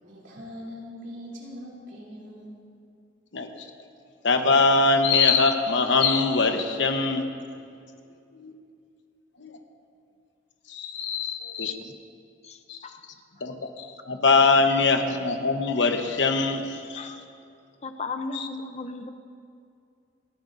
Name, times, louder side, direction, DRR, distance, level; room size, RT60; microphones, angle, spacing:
voice 1, 0.0-2.6, left 1 dB, 70° right, -5 dB, 3.2 m, -41 dB
voice 2, 4.2-7.2 8.3-8.5 9.4-9.5 10.7-11.7 12.7-12.8 13.4-17.1 18.3-18.5, left 4 dB, 65° left, 5 dB, 1.1 m, -22 dB
voice 3, 12.4-13.0 14.4-14.5 16.9-17.2 17.8-19.1, left 3 dB, 35° left, 7 dB, 0.6 m, -36 dB
29.0 x 10.5 x 2.6 m, 2.4 s
head